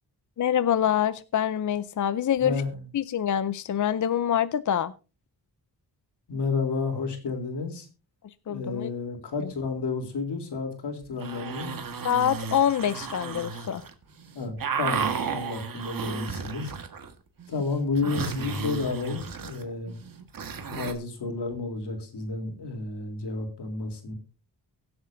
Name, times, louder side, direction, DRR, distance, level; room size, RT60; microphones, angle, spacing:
voice 1, 0.4-2.6 2.9-4.9 8.5-8.9 9.4-9.5 12.0-13.9, left 9 dB, 50° left, 0.5 m, -25 dB
voice 2, 2.4-2.8 6.3-7.9 8.5-11.8 14.3-16.7 17.5-19.9 20.7-24.1, left 4 dB, 90° left, 3.4 m, -31 dB
sound 1, 11.0-13.9 14.2-17.1 17.4-20.9, right 5 dB, 55° right, 1.6 m, -33 dB
23.0 x 7.8 x 2.6 m
wide cardioid pair, 150°, 40 cm